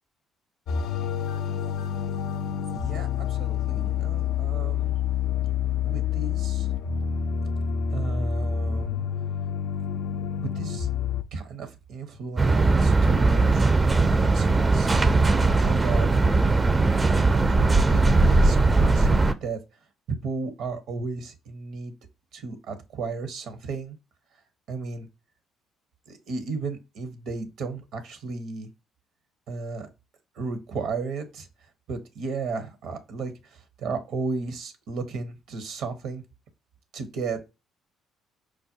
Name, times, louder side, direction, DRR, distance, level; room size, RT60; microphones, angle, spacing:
sound 1, 0.7-11.2, left 8 dB, 70° left, 0.3 m, -28 dB
voice 1, 2.7-4.9 5.6-6.7 7.9-9.0 10.4-10.9 11.3-13.7 14.1-16.1 16.9-19.6 20.2-21.9 22.3-24.0 24.7-25.1 26.1-28.7 29.5-29.9 30.4-31.5 31.9-36.2 36.9-37.5, right 4 dB, 70° right, 0.6 m, -34 dB
sound 2, 12.4-19.3, right 3 dB, 25° right, 0.4 m, -19 dB
4.6 x 2.1 x 2.6 m
hypercardioid pair, 60°, 0 cm